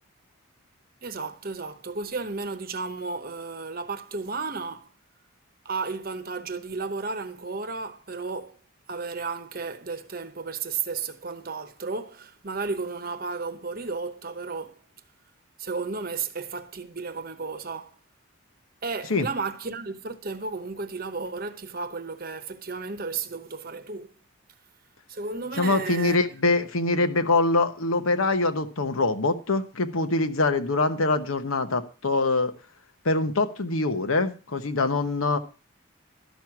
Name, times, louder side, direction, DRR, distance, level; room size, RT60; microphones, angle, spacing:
voice 1, 1.0-4.9 5.6-8.6 8.9-14.8 15.6-18.0 18.8-24.1 25.1-26.2, right 4 dB, 45° right, 0.9 m, -33 dB
voice 2, 25.6-32.5 33.0-35.4, left 3 dB, 80° left, 1.1 m, -24 dB
12.5 x 6.3 x 5.9 m
head